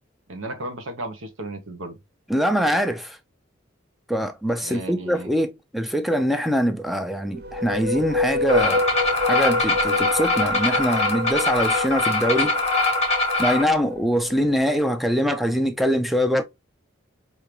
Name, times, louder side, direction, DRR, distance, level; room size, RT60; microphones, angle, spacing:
voice 1, 0.3-2.0 4.6-5.3, right 1 dB, 85° right, 0.9 m, -34 dB
voice 2, 2.3-3.2 4.1-8.9 9.2-12.6 13.4-16.4, equal, ahead, 0.4 m, -23 dB
sound 1, 7.2-14.9, left 2 dB, 50° right, 0.6 m, -28 dB
sound 2, 8.5-13.6, left 2 dB, 35° left, 1.0 m, -22 dB
5.1 x 2.8 x 2.9 m
head